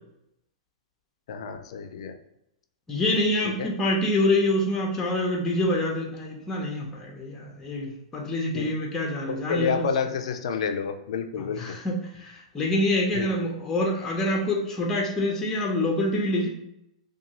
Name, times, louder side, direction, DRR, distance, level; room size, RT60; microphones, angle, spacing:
voice 1, 1.3-2.2 3.4-3.7 8.5-8.7 9.3-11.8 13.1-13.3, left 6 dB, 65° left, 6 dB, 0.4 m, -29 dB
voice 2, 2.9-9.9 11.5-16.5, left 1 dB, 15° left, -1 dB, 0.7 m, -26 dB
2.5 x 2.3 x 2.9 m, 0.82 s
hypercardioid pair, 120°, 3 cm